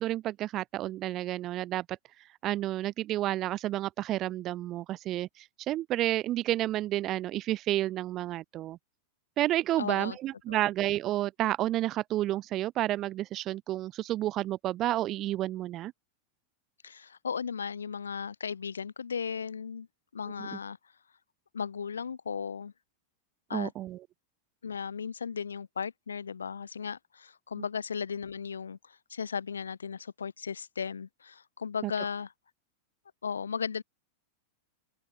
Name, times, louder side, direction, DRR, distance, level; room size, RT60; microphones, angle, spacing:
voice 1, 0.0-1.9 2.4-8.8 9.4-15.9 20.4-20.6 23.5-24.0 31.8-31.9, right 14 dB, 35° right, 0.9 m, -30 dB
voice 2, 9.8-10.2 10.5-10.6 16.8-19.9 20.1-20.8 21.5-22.7 23.5-23.7 24.6-32.3 33.2-33.8, left 6 dB, 70° left, 1.0 m, -36 dB
open air
figure-of-eight pair, 90°, 0 cm